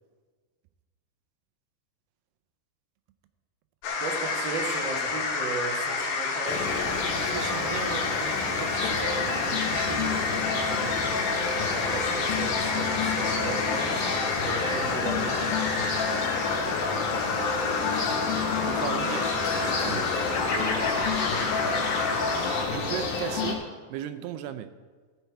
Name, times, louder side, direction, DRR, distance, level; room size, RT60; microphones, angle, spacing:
sound 1, 3.8-22.7, left 4 dB, 90° left, 3.8 m, -29 dB
voice 1, 4.0-6.8 7.5-8.1 11.5-14.0 14.4-15.5 16.9-18.1 20.5-21.4, right 4 dB, 55° right, 0 dB, 1.3 m, -37 dB
sound 2, 6.4-23.5, left 3 dB, 50° left, 2.4 m, -32 dB
voice 2, 7.1-11.0 18.7-20.1 22.7-23.6 23.9-24.7, right 11 dB, 85° right, 10 dB, 2.6 m, -37 dB
sound 3, 8.8-23.6, left 5 dB, 70° left, 2.5 m, -34 dB
16.5 x 6.8 x 4.6 m, 1.5 s
omnidirectional pair, 4.7 m